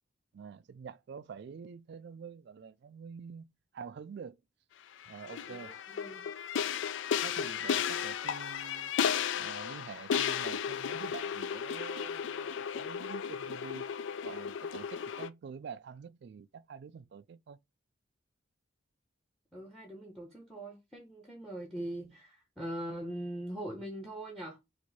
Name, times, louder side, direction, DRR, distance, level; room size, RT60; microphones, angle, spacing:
voice 1, 0.3-3.5 3.7-4.4 5.1-5.8 7.2-8.9 9.4-13.9 14.2-17.6, right 6 dB, 60° right, 0.3 m, -47 dB
sound 1, 5.0-15.3, left 7 dB, 70° left, 0.4 m, -34 dB
voice 2, 5.5-6.2 19.5-24.6, right 1 dB, ahead, 0.9 m, -41 dB
4.6 x 2.6 x 4.1 m
head